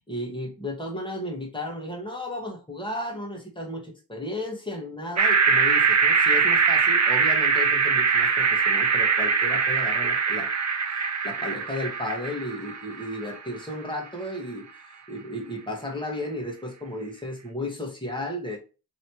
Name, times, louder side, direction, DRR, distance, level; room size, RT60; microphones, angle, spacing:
voice 1, 0.0-10.5 10.9-18.6, left 1 dB, 15° left, 0 dB, 1.4 m, -34 dB
sound 1, 5.2-13.4, right 5 dB, 50° right, 0.7 m, -22 dB
3.1 x 3.0 x 4.4 m, 0.32 s
wide cardioid pair, 85°, 37 cm